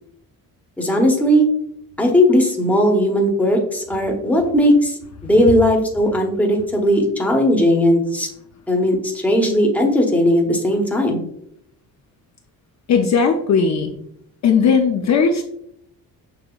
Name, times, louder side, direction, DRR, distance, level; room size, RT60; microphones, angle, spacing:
voice 1, 0.8-1.5 2.0-8.3 8.7-11.2, equal, 5° left, 0 dB, 0.9 m, -17 dB
voice 2, 12.9-13.9 14.4-15.4, left 6 dB, 50° left, 3 dB, 0.5 m, -17 dB
6.8 x 2.8 x 2.3 m, 0.72 s
cardioid pair, 115°, 37 cm